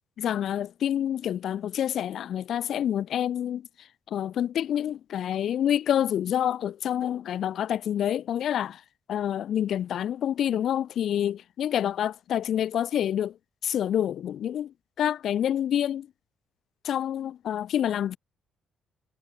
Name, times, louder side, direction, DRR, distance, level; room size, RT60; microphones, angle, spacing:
voice 1, 0.2-3.7 4.1-8.8 9.1-13.3 13.6-16.1 16.8-18.2, left 10 dB, 65° left, 0.9 m, -27 dB
hypercardioid pair, 50°, 0 cm